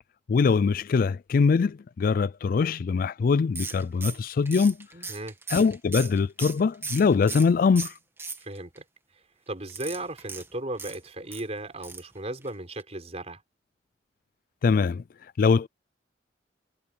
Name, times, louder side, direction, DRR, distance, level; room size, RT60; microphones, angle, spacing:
voice 1, 0.3-4.8 5.5-7.9 14.6-15.0 15.4-15.7, left 5 dB, 55° left, 0.3 m, -22 dB
sound 1, 3.6-7.5 7.8-8.8 9.7-11.4 11.8-12.1 12.4-12.5 12.8-12.9, right 4 dB, 15° right, 2.1 m, -37 dB
voice 2, 4.9-5.3 8.4-8.8 9.5-13.4, right 1 dB, 40° right, 4.2 m, -36 dB
head